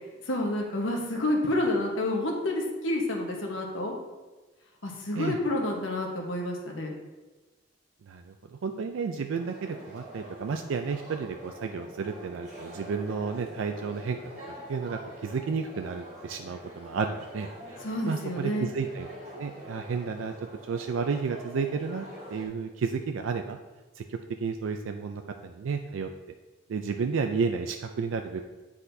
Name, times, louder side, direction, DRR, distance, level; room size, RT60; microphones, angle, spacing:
voice 1, 0.3-3.9 4.8-6.9 17.8-18.7, left 1 dB, 85° left, 0 dB, 1.2 m, -29 dB
voice 2, 8.6-14.2 14.7-17.8 18.1-19.1 19.3-20.3 20.7-22.1 22.3-23.6 24.0-26.1 26.7-28.4, right 5 dB, 85° right, 5 dB, 0.4 m, -32 dB
sound 1, 9.3-22.5, equal, 35° right, 1.7 m, -45 dB
9.7 x 4.2 x 2.7 m, 1.2 s
head